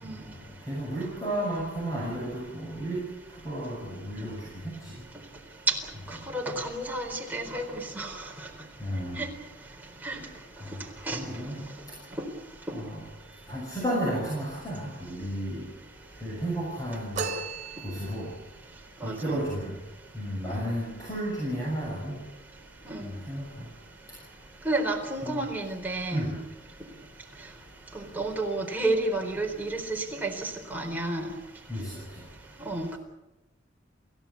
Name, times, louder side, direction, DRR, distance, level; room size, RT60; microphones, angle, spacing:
voice 1, 0.0-0.4 5.7-5.8 6.1-8.2 9.2-9.3 10.0-10.2 11.1-11.2 12.2-12.3 19.0-19.4 20.4-20.7 22.9-23.1 24.6-26.4 27.9-31.3 32.6-33.0, right 2 dB, 10° right, 0 dB, 4.1 m, -31 dB
voice 2, 0.7-3.0 3.4-4.3 4.6-4.7 8.8-9.2 10.6-10.8 11.1-11.6 12.7-13.0 13.5-15.6 16.2-17.2 17.8-18.3 19.0-19.7 20.1-22.2 23.0-23.4 25.2-25.4 26.1-26.3 31.7-32.0, equal, 20° left, -4 dB, 6.8 m, -32 dB
sound 1, 17.2-18.4, right 4 dB, 40° right, 3.7 m, -35 dB
29.0 x 16.5 x 8.4 m, 1.0 s
head